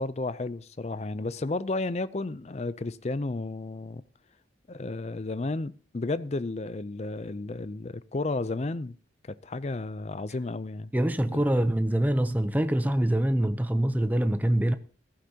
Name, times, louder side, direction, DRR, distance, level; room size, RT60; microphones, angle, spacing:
voice 1, 0.0-4.0 4.7-9.0 9.3-10.9 11.3-11.4, left 2 dB, 35° left, 0.5 m, -32 dB
voice 2, 10.9-14.7, right 1 dB, 10° right, 0.6 m, -24 dB
15.5 x 14.5 x 2.8 m
head